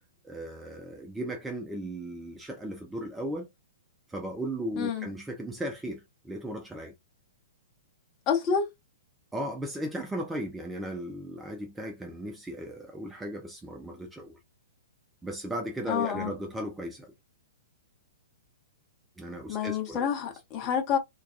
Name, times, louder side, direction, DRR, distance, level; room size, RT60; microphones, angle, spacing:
voice 1, 0.2-3.5 4.1-6.9 9.3-14.4 15.2-17.1 19.2-20.1, right 1 dB, 5° right, 0.4 m, -36 dB
voice 2, 4.8-5.1 8.3-8.7 15.9-16.3 19.5-21.0, left 7 dB, 30° left, 0.9 m, -28 dB
2.5 x 2.3 x 2.4 m
figure-of-eight pair, 110°, 0 cm